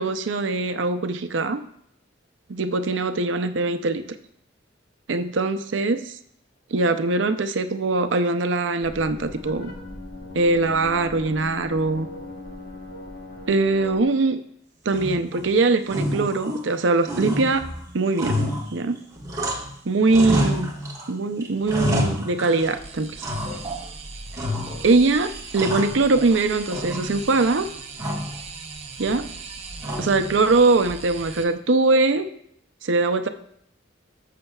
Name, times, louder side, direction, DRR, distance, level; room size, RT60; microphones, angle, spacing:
voice 1, 0.0-1.6 2.5-4.0 5.1-6.2 6.7-9.7 10.4-12.1 13.5-14.4 14.9-17.6 17.9-18.4 18.7-19.0 19.8-20.7 21.1-23.1 24.8-27.7 29.0-29.3 30.0-32.3 32.8-33.3, right 3 dB, 80° right, 9 dB, 0.6 m, -22 dB
sound 1, 8.8-14.0, left 2 dB, 60° left, 1.3 m, -38 dB
sound 2, 14.9-15.5 15.8-16.8 17.0-19.8 20.1-21.1 21.4-22.8 23.2-23.9 24.3-25.0 25.3-26.4 26.7-27.4 28.0-28.4 29.8-30.3, equal, 20° right, 1.6 m, -28 dB
sound 3, 22.6-31.4, right 4 dB, 35° right, 0.9 m, -39 dB
14.0 x 6.6 x 2.4 m, 0.69 s
head